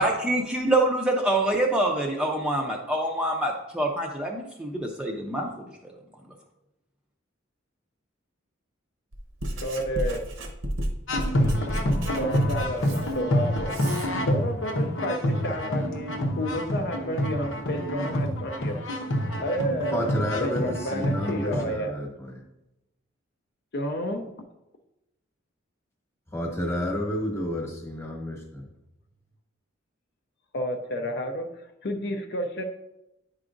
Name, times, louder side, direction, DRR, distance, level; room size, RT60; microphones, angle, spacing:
voice 1, 0.0-5.9, right 1 dB, 5° right, 0 dB, 0.5 m, -26 dB
Writing, 9.1-14.1, equal, 70° right, 0.8 m, -32 dB
voice 2, 9.5-10.3 12.1-13.7 14.2-18.8 19.4-20.1 20.4-22.0 23.7-24.3 30.5-32.6, equal, 55° left, 5 dB, 0.5 m, -31 dB
sound 1, 11.1-21.6, equal, 80° left, 0.8 m, -27 dB
voice 3, 19.9-22.4 26.3-28.6, left 1 dB, 15° left, 0 dB, 1.1 m, -30 dB
9.6 x 4.7 x 2.5 m, 0.91 s
head